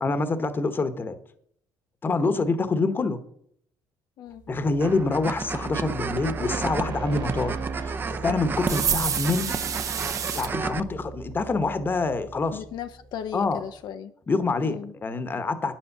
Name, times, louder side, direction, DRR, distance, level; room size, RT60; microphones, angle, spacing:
voice 1, 0.0-1.2 2.0-3.2 4.5-9.5 10.3-12.6 13.3-13.6 14.3-15.8, left 3 dB, 25° left, 1.1 m, -26 dB
voice 2, 2.2-2.6 4.2-4.4 12.5-14.1 14.6-14.9, left 9 dB, 70° left, 0.7 m, -37 dB
sound 1, 4.5-13.3, right 4 dB, 70° right, 2.3 m, -37 dB
sound 2, 4.8-10.8, right 4 dB, 25° right, 0.6 m, -33 dB
sound 3, 8.6-10.5, right 7 dB, 45° right, 0.9 m, -28 dB
9.4 x 7.3 x 6.6 m
cardioid pair, 125°, 8 cm